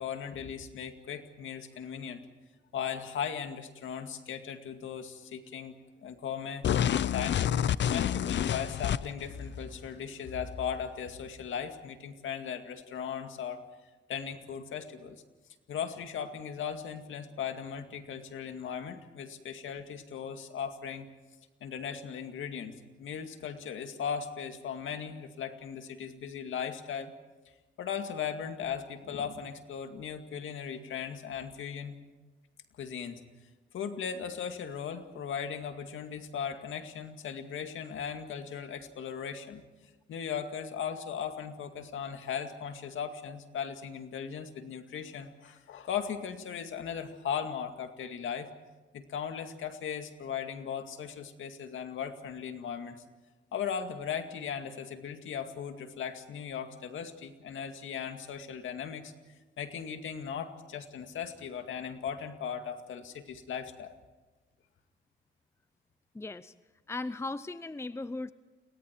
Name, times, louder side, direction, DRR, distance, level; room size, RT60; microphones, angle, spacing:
voice 1, 0.0-2.2 2.7-6.6 7.1-7.5 7.9-13.6 14.1-15.2 15.7-21.1 21.6-27.1 27.8-32.0 32.8-33.2 33.7-39.6 40.1-48.5 48.9-53.0 53.5-59.1 59.6-63.9, left 7 dB, 85° left, 7 dB, 2.1 m, -38 dB
sound 1, 6.6-9.3, left 10 dB, 65° left, 0.7 m, -28 dB
voice 2, 66.1-66.5 66.9-68.3, left 2 dB, 15° left, 14 dB, 0.7 m, -37 dB
30.0 x 22.5 x 4.6 m, 1.2 s
cardioid pair, 85°, 20 cm